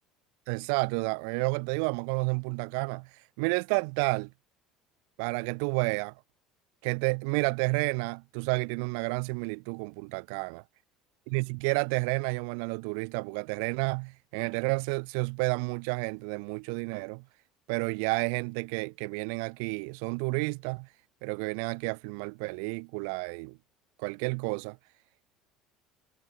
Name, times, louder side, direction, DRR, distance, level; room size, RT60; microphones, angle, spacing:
voice 1, 0.5-3.1 3.4-4.3 5.2-6.1 6.8-10.6 11.3-17.2 17.7-20.9 21.2-23.6 24.0-24.8, right 39 dB, 80° right, 5.8 m, -30 dB
cardioid pair, 125°, 0 cm